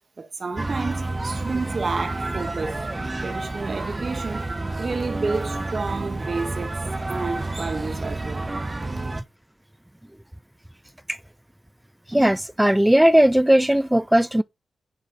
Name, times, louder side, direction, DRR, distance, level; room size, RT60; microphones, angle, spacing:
voice 1, 0.2-2.9 3.2-6.8 7.1-8.5, right 4 dB, 50° right, 1.9 m, -30 dB
sound 1, 0.6-9.2, right 2 dB, 25° right, 1.1 m, -29 dB
voice 2, 12.1-14.4, right 1 dB, 10° right, 0.5 m, -17 dB
10.5 x 4.7 x 4.2 m
cardioid pair, 55°, 0 cm